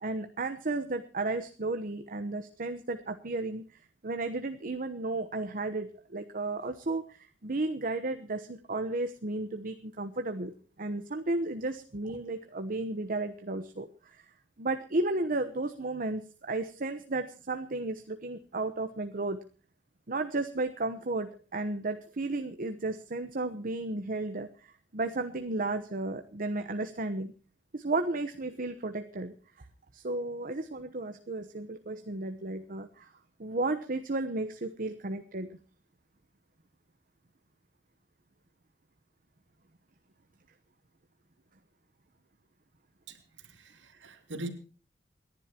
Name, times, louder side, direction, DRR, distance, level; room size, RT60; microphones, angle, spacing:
voice 1, 0.0-14.2 14.6-19.4 20.1-27.3 27.7-29.7 29.9-33.1 33.4-35.5, right 2 dB, 50° right, 8 dB, 1.0 m, -33 dB
voice 2, 43.1-44.5, right 2 dB, 80° right, 6 dB, 2.5 m, -42 dB
28.5 x 11.0 x 2.9 m, 0.39 s
head